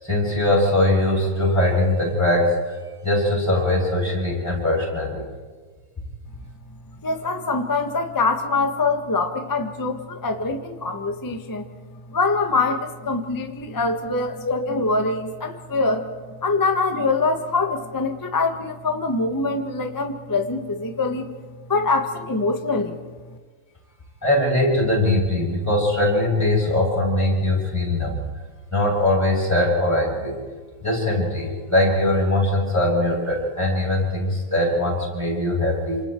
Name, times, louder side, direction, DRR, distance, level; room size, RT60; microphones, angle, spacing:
voice 1, 0.0-2.8 3.0-5.3 14.4-14.6 24.2-28.2 28.7-30.3 30.8-36.0, left 1 dB, 5° left, -3 dB, 7.8 m, -21 dB
voice 2, 7.0-11.6 12.1-16.1 16.4-21.3 21.7-23.0, left 3 dB, 25° left, 5 dB, 0.4 m, -24 dB
28.5 x 27.5 x 4.6 m, 1.4 s
omnidirectional pair, 3.3 m